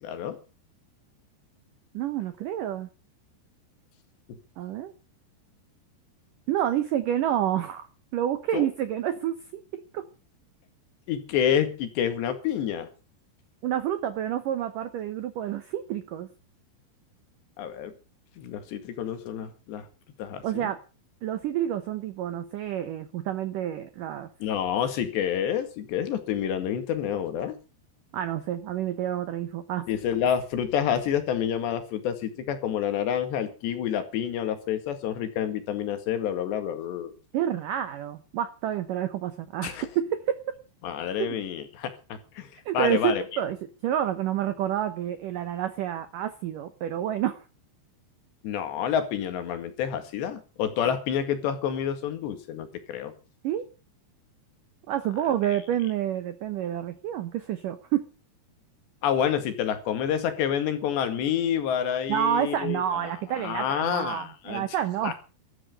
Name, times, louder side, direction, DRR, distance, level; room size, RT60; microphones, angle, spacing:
voice 1, 0.0-0.4 8.5-8.7 11.1-12.9 17.6-17.9 18.4-19.9 20.2-20.7 24.4-27.6 29.9-37.1 39.6-39.9 40.8-43.2 48.4-53.1 55.5-55.6 59.0-64.7 65.0-65.2, left 9 dB, 75° left, 9 dB, 4.1 m, -28 dB
voice 2, 1.9-2.9 4.6-4.9 6.5-7.9 8.1-10.0 13.6-16.3 20.4-20.8 21.2-24.3 28.1-29.9 37.3-40.4 41.2-41.4 42.7-43.6 43.8-47.4 53.4-53.7 54.9-58.1 62.1-65.1, right 11 dB, 75° right, 11 dB, 2.0 m, -29 dB
15.0 x 13.5 x 6.5 m, 0.35 s
omnidirectional pair, 5.2 m